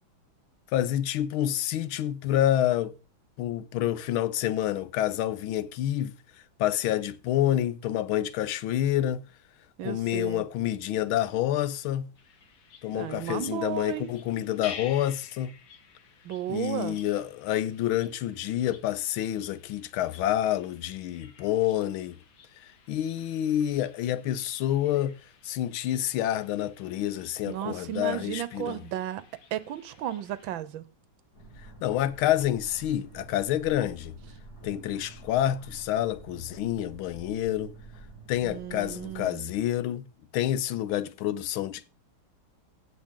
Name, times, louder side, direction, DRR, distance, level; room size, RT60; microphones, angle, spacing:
voice 1, 0.7-2.9 3.4-6.2 6.6-9.2 9.8-12.1 12.8-15.5 16.5-22.2 22.9-25.1 25.4-28.8 31.8-34.2 34.6-37.7 38.3-40.1 40.3-41.9, left 12 dB, 90° left, 1.5 m, -28 dB
voice 2, 9.8-10.4 12.9-14.1 16.2-17.0 27.5-29.2 29.5-30.8 38.4-39.5, right 12 dB, 75° right, 1.5 m, -34 dB
sound 1, 12.1-30.5, left 6 dB, 75° left, 2.1 m, -51 dB
sound 2, 31.3-39.2, right 3 dB, 50° left, 3.2 m, -48 dB
16.0 x 6.4 x 3.7 m
omnidirectional pair, 2.2 m